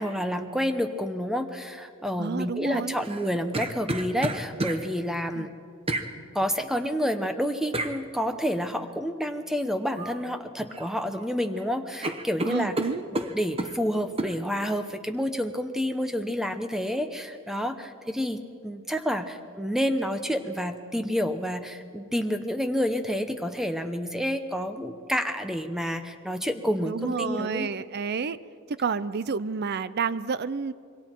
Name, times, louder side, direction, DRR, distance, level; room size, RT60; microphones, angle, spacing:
voice 1, 0.0-5.5 6.3-12.8 13.2-27.7, equal, ahead, 8 dB, 0.7 m, -29 dB
voice 2, 2.2-3.0 5.3-5.5 12.4-13.0 26.8-28.4 28.7-30.7, right 5 dB, 50° right, 16 dB, 0.5 m, -29 dB
sound 1, 3.0-4.8 5.9-6.1 7.7-7.9 9.9-10.2 10.6-11.3 11.6-11.7 12.0-13.7 14.2-14.3, right 2 dB, 25° right, 1.0 m, -31 dB
26.5 x 23.0 x 4.6 m, 2.2 s
head